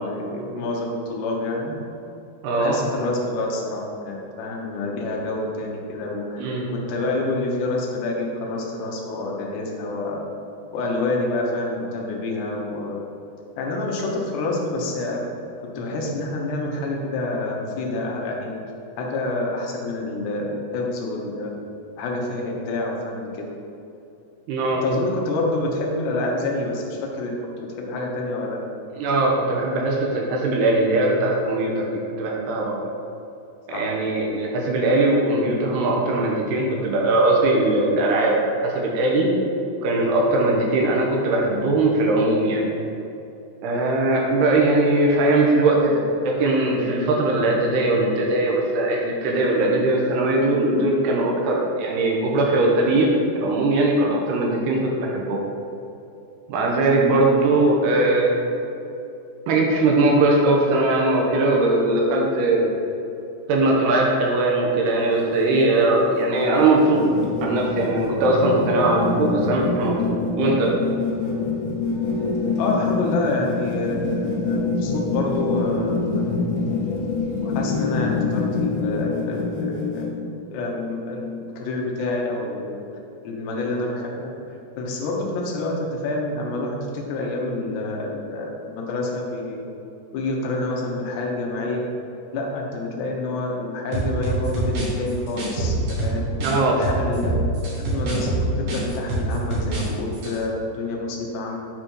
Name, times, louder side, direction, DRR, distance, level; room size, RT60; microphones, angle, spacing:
voice 1, 0.0-1.8 2.5-6.4 6.9-10.3 10.7-13.0 13.6-15.2 15.8-18.6 19.0-21.5 22.0-23.4 24.8-28.6 33.7-33.9 72.6-76.4 77.4-80.2 80.5-82.8 83.2-84.3 84.8-89.6 90.1-91.8 92.3-96.3 96.7-97.4 97.7-101.6, left 2 dB, 75° left, -1 dB, 3.1 m, -27 dB
voice 2, 2.4-2.8 6.4-6.7 24.5-24.8 29.0-31.9 32.2-32.8 33.7-38.4 38.6-39.3 39.8-42.6 43.6-53.1 53.4-55.4 56.5-58.4 59.5-62.7 63.5-67.1 67.4-70.7 96.4-96.8, right 2 dB, 75° right, -2 dB, 2.9 m, -20 dB
sound 1, 65.0-80.1, left 4 dB, 60° left, 2.4 m, -25 dB
sound 2, 93.9-96.5 96.8-99.9 100.1-100.3, right 2 dB, 50° right, 2.2 m, -25 dB
8.8 x 4.3 x 6.2 m, 2.8 s
omnidirectional pair, 5.0 m